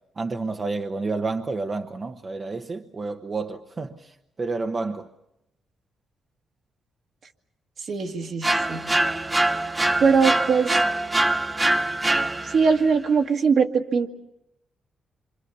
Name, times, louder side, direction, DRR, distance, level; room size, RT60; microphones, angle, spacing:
voice 1, 0.2-5.1, right 3 dB, 40° right, 5 dB, 1.1 m, -30 dB
voice 2, 7.9-8.9 10.0-10.8 12.4-14.1, right 5 dB, 65° right, 4 dB, 2.0 m, -21 dB
sound 1, 8.4-12.8, right 2 dB, 20° right, 1.0 m, -23 dB
26.5 x 25.5 x 7.1 m, 0.86 s
supercardioid pair, 65°, 0 cm